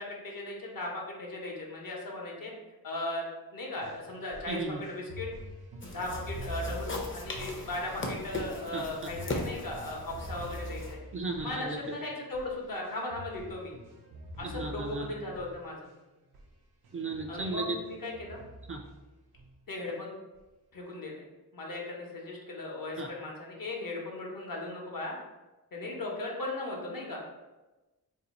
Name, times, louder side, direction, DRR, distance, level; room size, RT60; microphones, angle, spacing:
voice 1, 0.0-2.5 2.8-3.3 3.5-5.3 5.8-11.0 11.4-13.7 14.4-15.9 17.3-18.4 19.7-20.1 20.7-21.2 21.5-25.2 25.7-27.2, left 2 dB, 65° left, -1 dB, 0.8 m, -37 dB
sound 1, 3.8-16.0 16.3-16.5 16.8-19.0 19.3-19.9 20.3-20.4, equal, 90° right, 0.6 m, -45 dB
voice 2, 4.5-4.8 8.7-8.8 11.1-11.8 14.4-15.1 16.9-17.8 18.7-18.8 23.0-23.1, right 3 dB, 35° right, 2 dB, 0.4 m, -35 dB
sound 2, 5.8-10.9, left 2 dB, 35° left, 0.6 m, -39 dB
2.7 x 2.4 x 4.0 m, 1.1 s
wide cardioid pair, 95°, 37 cm